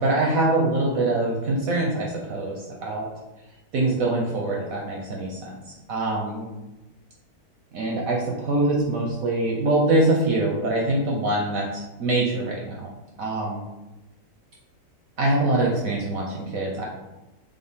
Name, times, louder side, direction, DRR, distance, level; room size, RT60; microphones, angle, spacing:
voice 1, 0.0-3.1 3.7-6.4 7.7-12.9 13.2-13.6 15.2-16.8, right 2 dB, 70° right, -2 dB, 0.8 m, -24 dB
5.3 x 2.0 x 3.5 m, 1.0 s
omnidirectional pair, 2.1 m